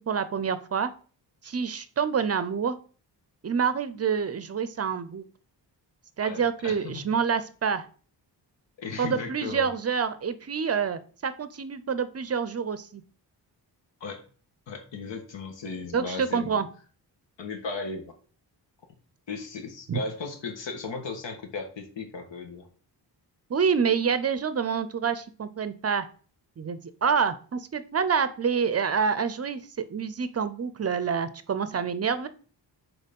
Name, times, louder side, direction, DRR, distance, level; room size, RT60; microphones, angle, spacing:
voice 1, 0.1-0.9 1.4-2.8 3.4-5.2 6.2-7.9 9.0-13.0 15.9-16.7 19.9-20.0 23.5-26.1 26.6-29.6 29.9-32.3, right 6 dB, 35° right, 13 dB, 0.5 m, -27 dB
voice 2, 6.2-7.0 8.8-9.7 14.0-14.2 14.7-16.6 17.4-18.1 19.3-22.7, left 4 dB, 90° left, 4 dB, 1.6 m, -36 dB
6.6 x 4.3 x 5.3 m, 0.41 s
wide cardioid pair, 150°, 43 cm